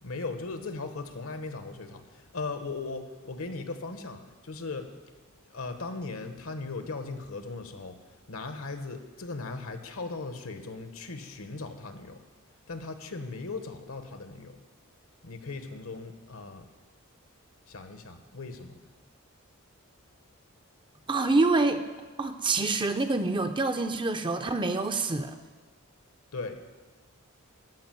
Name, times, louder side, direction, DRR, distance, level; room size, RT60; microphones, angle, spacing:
voice 1, 0.0-4.9 5.5-8.0 8.3-12.2 12.7-14.6 15.2-16.6 17.7-18.8 26.3-26.6, left 3 dB, 70° left, 8 dB, 1.1 m, -38 dB
voice 2, 21.1-21.8 22.2-25.4, right 3 dB, 20° right, 7 dB, 0.6 m, -26 dB
13.5 x 5.1 x 9.1 m, 1.3 s
head